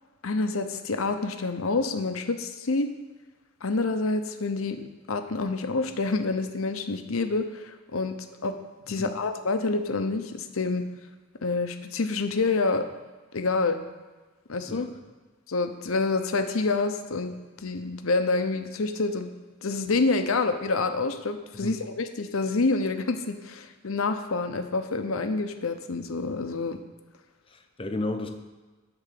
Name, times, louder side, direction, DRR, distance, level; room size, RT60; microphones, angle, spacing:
voice 1, 0.2-2.9 3.6-4.8 5.1-8.2 8.4-8.5 8.9-10.8 11.4-12.9 13.3-13.8 14.5-14.9 15.5-17.3 17.6-19.3 19.6-26.8, left 3 dB, 85° left, 8 dB, 0.8 m, -27 dB
voice 2, 27.5-28.3, left 2 dB, 25° left, 5 dB, 0.7 m, -33 dB
10.5 x 4.0 x 7.5 m, 1.3 s
head